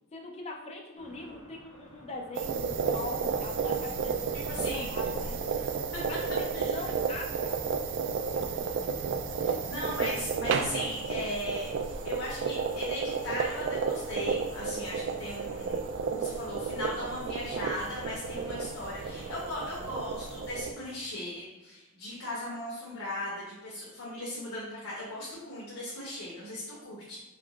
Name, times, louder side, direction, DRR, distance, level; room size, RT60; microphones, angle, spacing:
voice 1, 0.1-4.2 4.5-5.3 6.1-7.6 8.3-9.6 18.3-19.1, left 2 dB, 30° left, 0 dB, 0.5 m, -42 dB
sound 1, 1.0-20.4, equal, 20° right, 0.9 m, -53 dB
sound 2, 2.3-20.7, right 5 dB, 60° right, 0.3 m, -32 dB
voice 2, 4.3-4.9 5.2-5.7 5.9-6.0 6.5-6.7 9.4-11.7 12.0-27.2, left 1 dB, 80° left, -6 dB, 0.9 m, -38 dB
3.7 x 3.0 x 2.3 m, 1.1 s
head